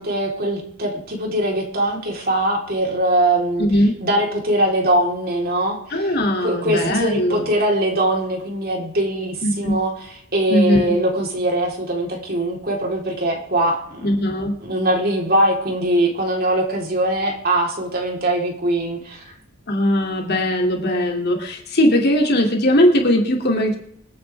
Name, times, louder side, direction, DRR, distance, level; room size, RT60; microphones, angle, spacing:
voice 1, 0.0-3.7 4.0-5.8 6.4-14.1 14.6-19.2, right 1 dB, 45° right, -1 dB, 4.1 m, -21 dB
voice 2, 3.6-4.0 5.9-7.5 9.4-9.8 10.5-10.9 14.0-14.5 19.7-23.7, equal, 50° left, 1 dB, 2.9 m, -19 dB
27.0 x 9.5 x 3.6 m, 0.69 s
head